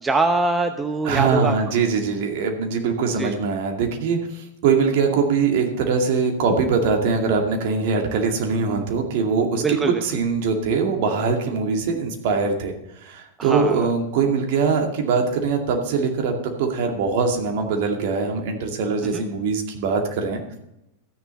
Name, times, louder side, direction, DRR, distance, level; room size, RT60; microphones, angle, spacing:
voice 1, 0.0-1.5 3.2-3.3 9.6-10.0 13.4-13.9 19.1-19.2, right 3 dB, 15° right, 7 dB, 0.8 m, -23 dB
voice 2, 1.0-12.7 13.0-20.4, right 5 dB, 50° right, 3 dB, 2.3 m, -22 dB
13.5 x 10.0 x 4.2 m, 0.86 s
figure-of-eight pair, 90°, 0 cm